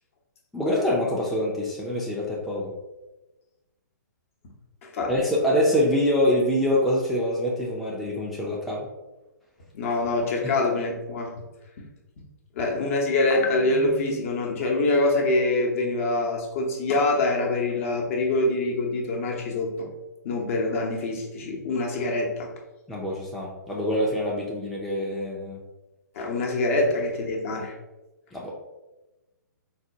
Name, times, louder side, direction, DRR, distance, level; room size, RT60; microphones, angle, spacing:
voice 1, 0.5-2.7 5.1-8.9 10.4-10.5 22.9-25.6 28.3-28.5, left 1 dB, ahead, -5 dB, 0.4 m, -25 dB
voice 2, 4.8-5.1 9.7-11.3 11.8-11.9 12.5-19.9 20.2-22.5 26.1-27.7, left 2 dB, 45° left, 0 dB, 0.7 m, -25 dB
4.1 x 2.1 x 2.6 m, 1.0 s
figure-of-eight pair, 125°, 10 cm